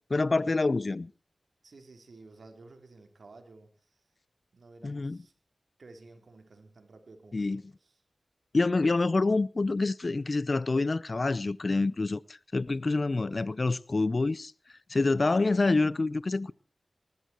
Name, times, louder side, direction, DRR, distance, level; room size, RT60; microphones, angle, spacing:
voice 1, 0.1-1.1 4.8-5.2 7.3-7.6 8.5-12.2 12.5-14.5 14.9-16.5, left 3 dB, 55° left, 0.7 m, -27 dB
voice 2, 1.6-4.0 4.5-5.3 5.8-8.0, right 3 dB, 75° right, 4.1 m, -53 dB
19.5 x 14.5 x 4.6 m
cardioid pair, 40°, 0 cm